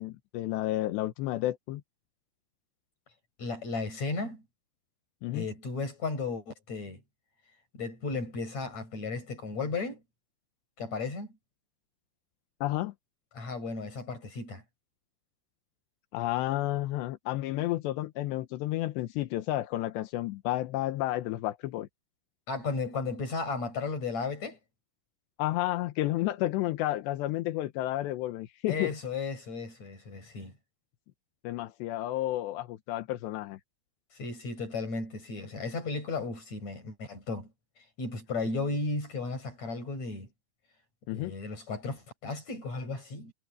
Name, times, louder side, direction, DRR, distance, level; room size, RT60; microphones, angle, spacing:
voice 1, 0.0-1.8 5.2-5.5 12.6-12.9 16.1-21.9 25.4-28.9 31.4-33.6 41.1-41.3, left 15 dB, 85° left, 3.2 m, -31 dB
voice 2, 3.4-4.4 5.3-7.0 7.7-10.0 10.8-11.4 13.3-14.6 22.5-24.6 28.7-30.5 34.2-37.5 38.0-40.3 41.1-43.3, left 3 dB, 40° left, 8.3 m, -34 dB
omnidirectional pair, 4.9 m